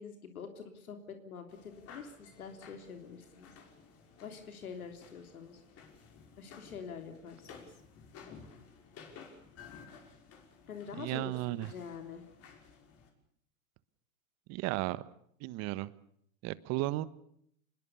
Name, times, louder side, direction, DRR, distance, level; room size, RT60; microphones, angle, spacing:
voice 1, 0.0-3.5 4.2-5.6 6.4-7.7 10.7-12.2, left 6 dB, 80° left, 6 dB, 3.3 m, -46 dB
sound 1, 1.5-13.1, left 5 dB, 35° left, 5.8 m, -55 dB
voice 2, 11.0-11.7 14.5-15.0 15.4-15.9 16.4-17.1, right 18 dB, 35° right, 17 dB, 1.3 m, -34 dB
26.5 x 21.5 x 7.0 m, 0.70 s
hypercardioid pair, 115°, 43 cm